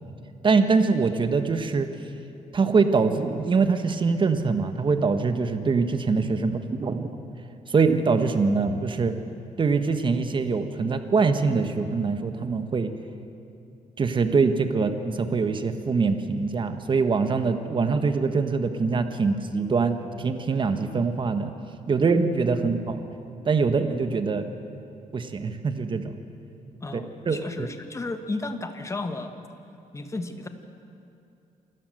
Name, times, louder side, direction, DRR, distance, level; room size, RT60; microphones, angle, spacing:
voice 1, 0.4-1.9 2.5-7.1 7.7-9.1 9.6-12.9 14.0-21.5 21.9-23.0 23.4-24.4 25.1-26.1 26.9-27.0 27.3-27.7, right 4 dB, 35° right, 8 dB, 1.4 m, -23 dB
voice 2, 26.8-29.3 29.9-30.5, left 2 dB, 20° left, 7 dB, 1.5 m, -33 dB
27.5 x 12.5 x 7.9 m, 2.6 s
cardioid pair, 120°, 14 cm